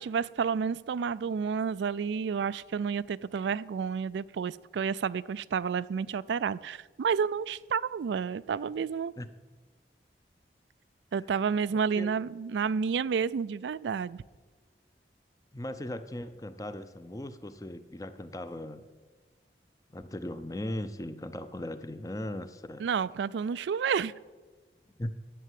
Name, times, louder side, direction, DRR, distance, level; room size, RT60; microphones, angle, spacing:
voice 1, 0.0-9.1 11.1-14.2 22.8-24.1, right 6 dB, 85° right, 18 dB, 0.3 m, -30 dB
voice 2, 15.5-18.9 19.9-22.9 25.0-25.1, left 1 dB, 20° left, 11 dB, 0.6 m, -38 dB
11.0 x 8.5 x 7.5 m, 1.3 s
head